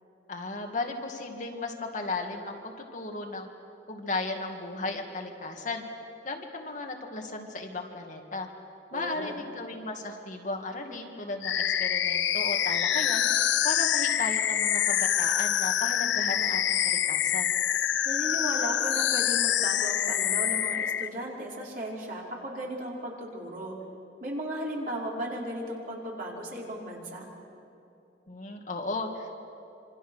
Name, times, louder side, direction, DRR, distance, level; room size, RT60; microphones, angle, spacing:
voice 1, 0.3-3.5 3.9-5.8 6.2-8.5 8.9-13.3 13.6-17.5 28.3-29.3, left 3 dB, 45° left, 2 dB, 2.1 m, -35 dB
voice 2, 8.9-9.4 18.0-23.8 24.2-27.3, right 1 dB, 50° right, -3 dB, 4.8 m, -36 dB
sound 1, 11.4-21.1, left 10 dB, 80° left, 0.6 m, -26 dB
27.0 x 25.5 x 6.4 m, 2.8 s
head